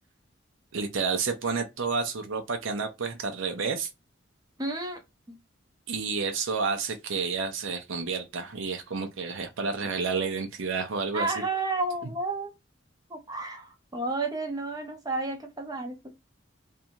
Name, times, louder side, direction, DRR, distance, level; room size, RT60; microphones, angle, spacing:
voice 1, 0.7-3.9 5.9-11.3, right 4 dB, 80° right, 0.5 m, -30 dB
voice 2, 4.6-5.0 5.3-5.4 11.1-12.5 13.1-16.0, right 3 dB, 20° right, 0.6 m, -31 dB
2.6 x 2.3 x 2.8 m
head